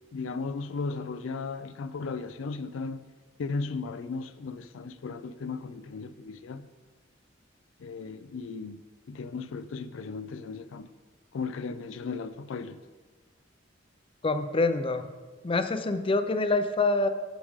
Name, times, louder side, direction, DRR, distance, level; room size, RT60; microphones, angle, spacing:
voice 1, 0.1-3.0 3.4-6.7 7.8-8.8 9.1-10.9 11.3-12.8, left 4 dB, 85° left, 0.4 m, -36 dB
voice 2, 14.2-15.1 15.4-17.1, left 3 dB, 30° left, 0.5 m, -26 dB
15.0 x 5.0 x 3.6 m
head